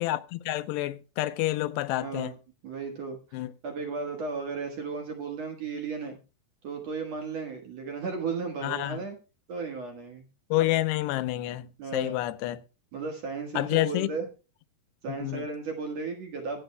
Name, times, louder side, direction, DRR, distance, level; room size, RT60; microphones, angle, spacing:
voice 1, 0.0-2.3 3.3-3.5 8.6-9.0 10.5-12.6 13.6-14.1 15.2-15.5, left 16 dB, 90° left, 2.8 m, -28 dB
voice 2, 2.0-2.3 2.6-6.2 6.6-9.2 9.5-10.2 11.8-12.1 12.9-14.3 15.0-16.6, right 4 dB, 55° right, 2.1 m, -35 dB
23.5 x 8.0 x 2.2 m
omnidirectional pair, 4.7 m